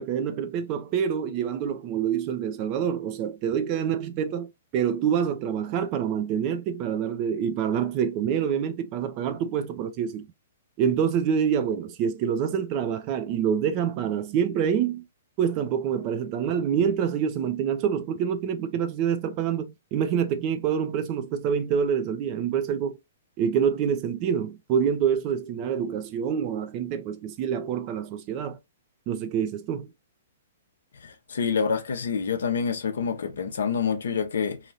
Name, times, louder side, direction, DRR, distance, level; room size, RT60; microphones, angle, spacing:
voice 1, 0.0-10.3 10.8-15.0 15.4-23.0 23.4-28.6 29.1-29.9, right 8 dB, 35° right, 0.5 m, -26 dB
voice 2, 31.0-34.6, left 6 dB, 60° left, 0.7 m, -27 dB
2.8 x 2.7 x 2.8 m
figure-of-eight pair, 115°, 0 cm